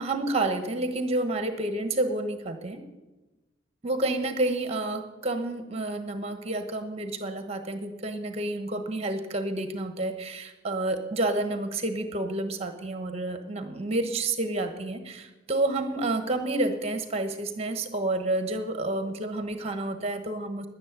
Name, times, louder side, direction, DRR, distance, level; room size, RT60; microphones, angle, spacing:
voice 1, 0.0-2.8 3.8-20.7, right 2 dB, 30° right, 8 dB, 1.2 m, -29 dB
11.0 x 9.5 x 9.4 m, 1.1 s
head